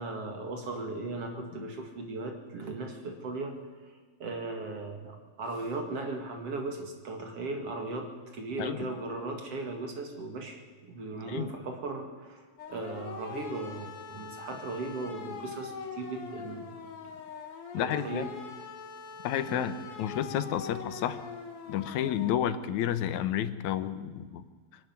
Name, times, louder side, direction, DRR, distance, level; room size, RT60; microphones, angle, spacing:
voice 1, 0.0-3.6 3.8-16.8 17.7-18.3 19.5-19.7, right 2 dB, 55° right, 4 dB, 3.0 m, -37 dB
voice 2, 8.6-8.9 11.3-11.5 17.7-18.3 19.2-21.2 21.7-24.4, left 10 dB, 80° left, 11 dB, 2.3 m, -31 dB
sound 1, 12.6-22.3, left 5 dB, 55° left, 2.6 m, -43 dB
23.0 x 12.0 x 9.6 m, 1.4 s
omnidirectional pair, 3.3 m